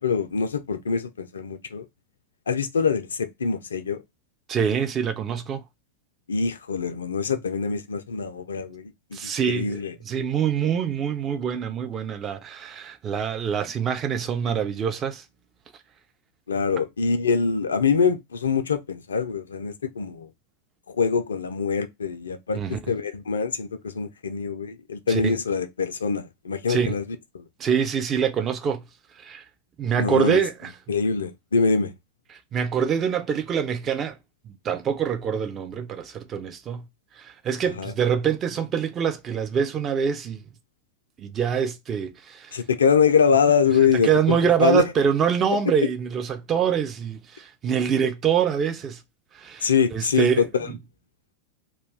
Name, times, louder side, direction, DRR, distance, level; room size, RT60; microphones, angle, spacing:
voice 1, 0.0-1.8 2.5-4.0 6.3-9.9 16.5-20.3 20.9-22.6 22.9-27.0 27.3-27.4 30.0-30.4 30.9-31.9 37.8-37.9 42.5-44.8 49.6-50.3 50.5-50.7, left 5 dB, 70° left, 0.4 m, -24 dB
voice 2, 4.5-5.6 9.1-15.2 22.5-22.8 25.1-25.4 26.7-26.9 27.6-28.8 29.2-29.4 29.8-30.7 32.5-34.2 34.5-36.8 37.2-40.4 41.2-42.6 43.8-49.0 49.3-50.8, right 7 dB, 25° right, 0.4 m, -25 dB
2.3 x 2.2 x 3.1 m
figure-of-eight pair, 90°, 0 cm